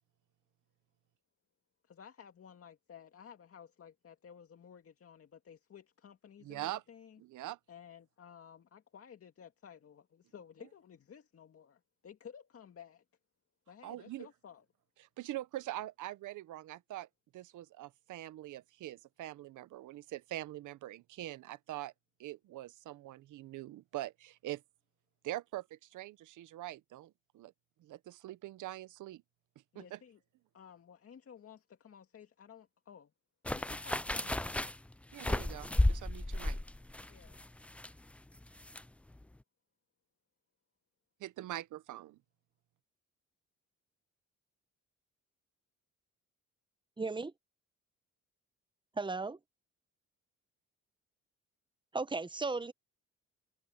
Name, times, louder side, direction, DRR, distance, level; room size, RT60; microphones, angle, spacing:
voice 1, 1.8-7.2 7.7-13.0 13.7-14.6 29.7-30.2 30.5-33.1 33.5-34.6 37.1-37.5, left 8 dB, 50° left, 2.2 m, -55 dB
voice 2, 6.4-6.8 7.2-7.6 13.8-14.3 15.0-17.1 17.3-21.9 22.2-24.6 25.2-27.5 27.8-29.2 29.7-30.0 35.1-36.6 41.2-42.2, right 15 dB, 80° right, 1.0 m, -43 dB
sound 1, 33.4-38.8 39.1-39.2, left 1 dB, 5° left, 0.3 m, -34 dB
voice 3, 47.0-47.3 49.0-49.4 51.9-52.7, right 3 dB, 15° right, 0.9 m, -35 dB
cardioid pair, 90°, 30 cm